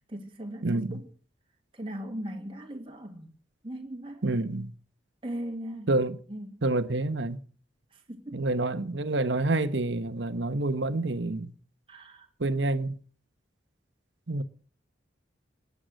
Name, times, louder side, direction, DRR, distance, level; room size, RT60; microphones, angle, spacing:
voice 1, 0.1-1.1 1.7-3.3 3.6-4.2 5.2-5.9 6.3-6.6 7.9-8.4 11.9-12.3, right 1 dB, 30° right, 2.1 m, -39 dB
voice 2, 0.6-1.0 4.2-4.7 5.9-6.2 6.6-7.4 8.3-11.5 12.4-13.0 14.3-14.4, right 2 dB, 70° right, 1.1 m, -28 dB
18.0 x 9.7 x 6.5 m
head